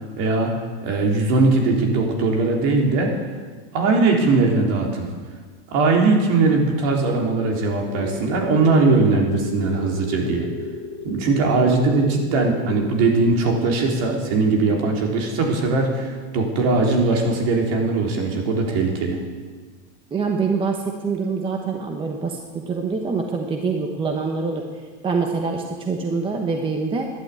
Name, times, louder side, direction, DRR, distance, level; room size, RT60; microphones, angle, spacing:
voice 1, 0.2-3.1 3.7-5.1 5.7-10.5 11.0-19.2, right 3 dB, 55° right, 0 dB, 3.7 m, -20 dB
sound 1, 7.9-12.9, left 5 dB, 10° left, 4.1 m, -34 dB
voice 2, 20.1-22.4 22.7-24.6 25.0-27.1, right 4 dB, 15° right, 3 dB, 1.0 m, -25 dB
13.5 x 11.5 x 8.3 m, 1.5 s
supercardioid pair, 160°, 35 cm